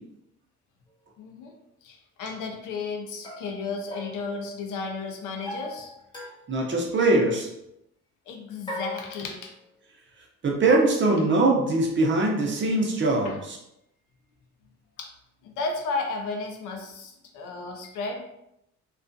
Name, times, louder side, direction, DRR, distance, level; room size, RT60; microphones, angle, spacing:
sound 1, 0.9-1.0 3.2-4.9 5.5-6.7 7.0-7.4 8.7-9.7, left 2 dB, 15° left, 0.8 m, -40 dB
voice 1, 1.2-1.5 1.8-5.9 8.3-9.5 13.2-13.4 15.0-15.1 15.4-18.2, left 3 dB, 85° left, 3 dB, 0.6 m, -33 dB
voice 2, 6.5-7.5 10.4-13.3, right 2 dB, 40° right, -1 dB, 0.7 m, -22 dB
2.4 x 2.2 x 2.5 m, 0.82 s
cardioid pair, 90°, 30 cm